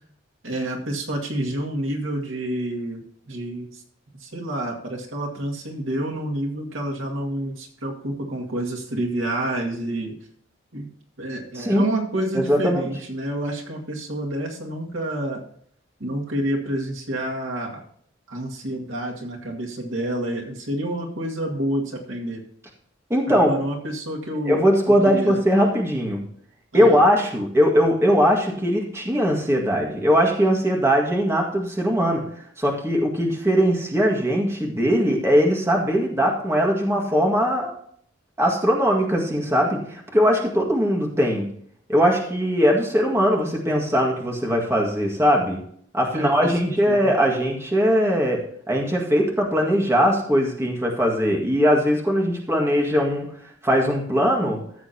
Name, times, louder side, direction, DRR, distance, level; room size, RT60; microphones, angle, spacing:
voice 1, 0.4-3.8 4.2-10.1 10.7-10.9 11.2-15.4 16.0-17.8 18.3-22.4 23.3-24.6 25.0-25.4 26.7-27.0 46.1-47.1, right 1 dB, 80° right, 0 dB, 2.2 m, -28 dB
voice 2, 12.3-12.8 23.1-23.5 24.5-26.2 26.7-32.2 32.6-37.7 38.4-41.5 41.9-45.6 45.9-48.4 48.7-53.3 53.6-54.6, equal, 15° right, -1 dB, 1.9 m, -20 dB
14.5 x 7.5 x 2.9 m, 0.63 s
head